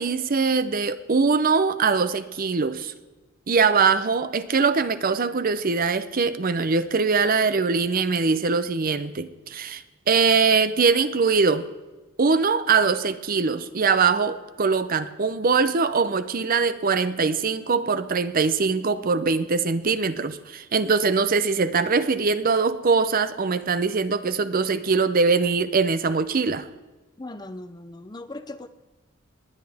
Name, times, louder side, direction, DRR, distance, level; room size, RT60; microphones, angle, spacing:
voice 1, 0.0-2.9 3.5-11.7 12.2-26.7, right 4 dB, 40° right, 12 dB, 0.6 m, -22 dB
voice 2, 27.2-28.7, left 2 dB, 20° left, 11 dB, 0.6 m, -38 dB
19.5 x 10.0 x 3.5 m, 1.2 s
head